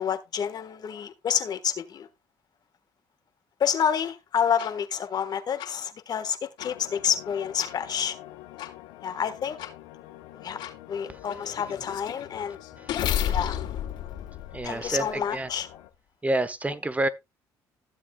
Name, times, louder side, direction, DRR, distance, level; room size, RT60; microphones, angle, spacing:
voice 1, 0.0-2.1 3.6-8.2 9.0-9.6 10.3-10.6 10.9-12.6 13.3-13.6 14.6-15.8, left 8 dB, 55° left, 1.4 m, -28 dB
sound 1, 4.6-4.7 5.6-5.7 6.6-6.7 7.6-7.7 8.6-8.7 9.6-9.7 10.6-10.7 11.3-15.2, left 10 dB, 75° left, 3.1 m, -32 dB
sound 2, 6.6-15.9, left 14 dB, 90° left, 0.9 m, -47 dB
voice 2, 14.5-15.5 16.2-17.1, right 1 dB, 15° right, 1.1 m, -28 dB
15.0 x 7.4 x 2.3 m
supercardioid pair, 70°, 8 cm